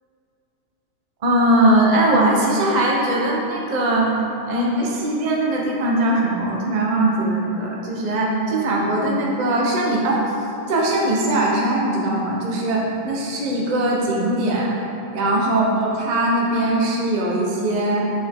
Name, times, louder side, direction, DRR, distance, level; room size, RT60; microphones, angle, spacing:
voice 1, 1.2-4.1 4.5-10.2 10.7-14.8 15.1-18.1, right 1 dB, 45° right, -3 dB, 0.5 m, -20 dB
7.7 x 5.2 x 3.6 m, 3.0 s
omnidirectional pair, 2.2 m